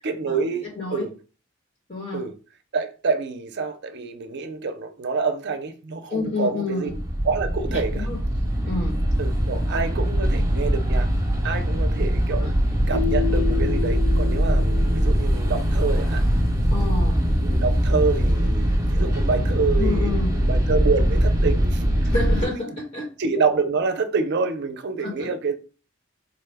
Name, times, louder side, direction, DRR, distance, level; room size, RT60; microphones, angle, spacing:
voice 1, 0.0-1.1 2.1-2.3 2.7-6.9 7.2-8.1 9.2-11.1 11.4-12.5 12.9-16.2 17.4-21.9 22.4-22.8 23.2-25.6, right 4 dB, 55° right, 0.5 m, -27 dB
voice 2, 1.9-2.2 6.1-6.9 7.6-8.2 8.7-9.0 12.4-12.5 16.7-17.2 19.8-20.4 22.0-23.1 25.0-25.3, left 3 dB, 40° left, 1.2 m, -29 dB
sound 1, 6.9-22.4, equal, 15° right, 1.0 m, -22 dB
Keyboard (musical), 12.9-15.8, left 13 dB, 65° left, 0.9 m, -31 dB
4.0 x 2.2 x 3.3 m
head